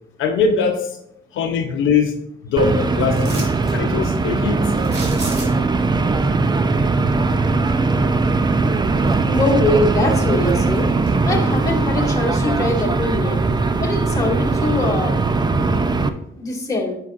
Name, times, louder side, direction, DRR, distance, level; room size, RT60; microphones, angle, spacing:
voice 1, 0.2-1.0 1.3-4.7, left 5 dB, 80° left, 4 dB, 0.8 m, -21 dB
sound 1, 2.6-16.1, right 3 dB, 20° right, 0.5 m, -19 dB
sound 2, 3.2-3.8 4.8-5.8 8.3-8.4 8.9-9.6 10.0-11.1 11.6-11.7, right 2 dB, 55° right, 2.8 m, -34 dB
voice 2, 9.3-11.0 11.2-13.4 13.8-15.2 16.4-17.0, left 2 dB, 15° left, -4 dB, 2.2 m, -22 dB
9.2 x 6.1 x 2.5 m, 0.80 s
cardioid pair, 90°, 20 cm